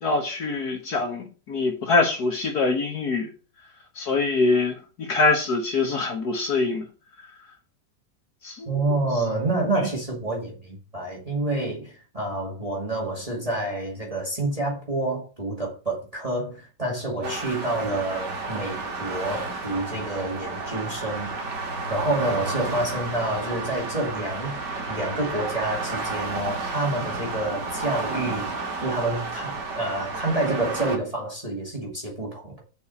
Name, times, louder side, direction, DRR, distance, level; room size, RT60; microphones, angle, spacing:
voice 1, 0.0-3.3 4.0-6.8 8.4-8.7 17.2-17.3, left 3 dB, 60° left, 1.8 m, -24 dB
voice 2, 8.7-21.3 21.9-24.6 24.9-32.6, right 2 dB, 20° right, 2.3 m, -28 dB
sound 1, 17.2-31.0, right 3 dB, 75° right, 2.2 m, -32 dB
6.6 x 5.3 x 7.0 m
omnidirectional pair, 1.9 m